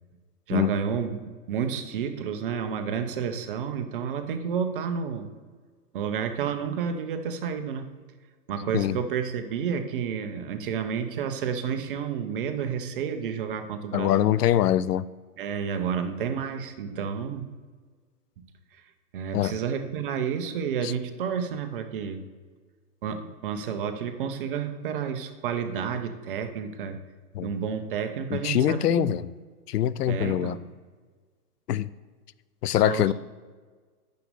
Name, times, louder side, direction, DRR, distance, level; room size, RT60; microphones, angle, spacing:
voice 1, 0.5-1.2 1.5-5.3 5.9-7.9 8.5-14.4 15.4-17.5 19.1-22.2 23.0-27.0 27.4-29.1 30.1-30.6 32.7-33.1, right 7 dB, 35° right, 8 dB, 0.7 m, -30 dB
voice 2, 13.9-15.0 19.3-19.5 20.8-20.9 27.3-27.5 28.3-29.3 29.7-30.6 31.7-31.9 32.6-33.1, left 12 dB, 85° left, 18 dB, 0.5 m, -23 dB
6.6 x 6.3 x 6.8 m, 1.5 s
hypercardioid pair, 145°, 46 cm